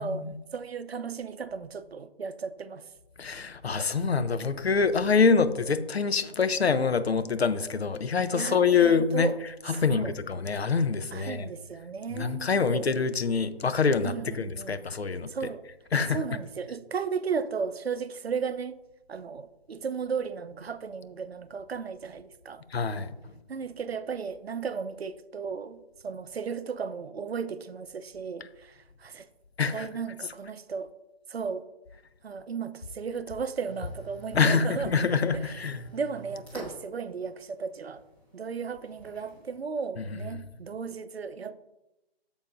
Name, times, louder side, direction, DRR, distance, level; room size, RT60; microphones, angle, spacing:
voice 1, 0.0-0.3 3.2-9.3 9.7-11.5 12.1-15.5 15.9-16.2 22.7-23.3 29.6-29.9 34.3-35.8 40.0-40.2, left 5 dB, 85° left, 0.7 m, -25 dB
voice 2, 0.5-2.8 5.2-5.5 8.3-9.3 9.7-10.1 11.1-12.9 14.0-14.8 15.3-15.6 15.9-18.8 19.1-22.6 23.5-29.3 29.7-30.9 31.3-31.6 32.2-35.1 35.3-35.5 35.9-38.0 38.3-41.6, right 6 dB, 75° right, 0.6 m, -35 dB
sound 1, 33.6-39.6, right 2 dB, 5° left, 1.5 m, -48 dB
8.8 x 7.2 x 2.5 m
figure-of-eight pair, 155°, 31 cm